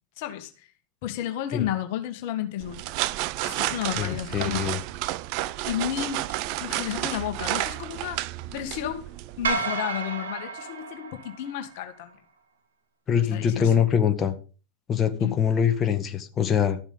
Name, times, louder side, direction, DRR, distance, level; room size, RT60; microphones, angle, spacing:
voice 1, 0.2-0.7 1.0-2.9 3.4-4.7 5.7-6.3 6.6-9.1 9.4-12.2 13.2-13.7 15.2-15.4, left 11 dB, 60° left, 1.7 m, -32 dB
sound 1, 2.6-9.5, right 17 dB, 55° right, 0.6 m, -31 dB
voice 2, 4.0-4.8 13.1-14.3 14.9-16.8, left 8 dB, 30° left, 1.9 m, -23 dB
sound 2, 9.4-11.8, right 4 dB, 85° right, 2.1 m, -31 dB
13.5 x 7.2 x 5.5 m
hypercardioid pair, 90°, 0 cm